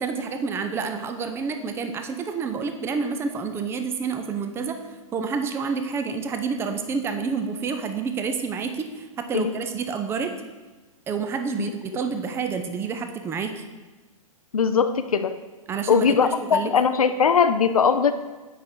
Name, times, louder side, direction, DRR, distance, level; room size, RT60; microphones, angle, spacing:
voice 1, 0.0-4.8 5.1-10.3 11.1-13.6 15.7-16.7, right 5 dB, 15° right, 7 dB, 0.5 m, -29 dB
voice 2, 14.5-15.4 15.9-18.1, left 6 dB, 85° left, 10 dB, 0.4 m, -20 dB
8.2 x 5.2 x 4.4 m, 1.2 s
figure-of-eight pair, 115°, 18 cm